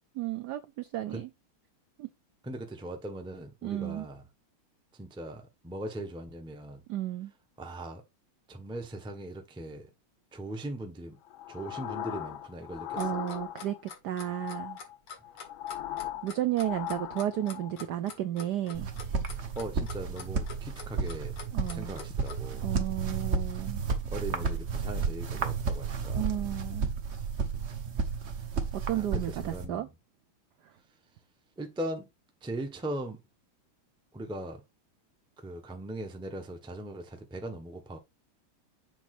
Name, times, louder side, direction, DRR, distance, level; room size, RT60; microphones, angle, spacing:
voice 1, 0.1-1.3 2.0-2.1 3.6-4.1 6.9-7.3 12.9-14.8 16.2-18.9 21.5-22.0 22.6-23.8 26.1-26.9 28.7-29.9, right 12 dB, 75° right, 0.9 m, -33 dB
voice 2, 2.4-4.2 5.0-6.8 7.6-8.0 8.5-9.9 10.3-11.2 11.5-13.1 19.5-21.3 21.7-22.8 24.1-26.4 28.9-29.9 31.6-32.1 32.4-33.2 34.1-34.6 35.4-38.0, right 1 dB, 5° right, 0.6 m, -39 dB
sound 1, 11.3-13.9 14.2-17.7, left 12 dB, 70° left, 1.4 m, -39 dB
Clock, 12.7-22.4, left 5 dB, 90° left, 2.7 m, -45 dB
sound 2, 18.7-29.7, right 5 dB, 45° right, 0.9 m, -32 dB
7.2 x 2.9 x 5.9 m
omnidirectional pair, 2.3 m